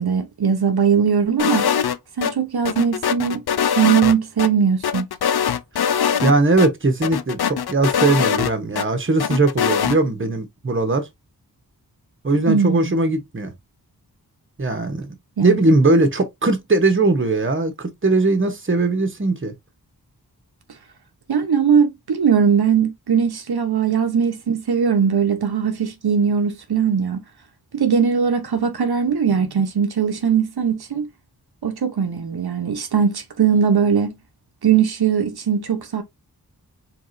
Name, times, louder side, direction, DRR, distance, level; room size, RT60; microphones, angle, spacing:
voice 1, 0.0-1.7 2.2-3.4 3.8-5.1 12.5-13.0 15.4-15.7 21.3-27.2 27.7-31.1 31.6-34.1 34.6-36.0, right 7 dB, 75° right, 0.9 m, -20 dB
sound 1, 1.4-2.3 2.7-4.5 4.8-6.3 6.6-6.7 7.0-8.9 9.2-10.0, left 8 dB, 80° left, 0.6 m, -22 dB
voice 2, 6.2-11.1 12.2-13.5 14.6-15.1 15.4-19.5, right 2 dB, 30° right, 1.1 m, -19 dB
4.9 x 3.4 x 2.6 m
wide cardioid pair, 100°, 38 cm